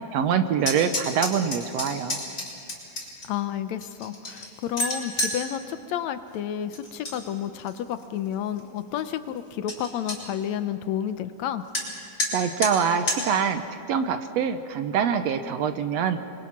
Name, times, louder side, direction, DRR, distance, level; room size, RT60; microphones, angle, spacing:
voice 1, 0.1-2.2 12.3-13.6 13.9-16.2, right 7 dB, 70° right, 9 dB, 1.7 m, -24 dB
sound 1, 0.6-3.3 3.8-5.4 6.7-7.2 7.5-8.0 8.6-8.7 9.0-9.1 9.4-9.5 9.7-10.2 11.7-11.9 12.2-12.3 12.6-12.7 13.1-13.2, left 1 dB, 25° left, 5.5 m, -29 dB
voice 2, 3.2-11.6, left 10 dB, 75° left, 11 dB, 1.9 m, -31 dB
30.0 x 23.0 x 5.9 m, 2.5 s
omnidirectional pair, 3.5 m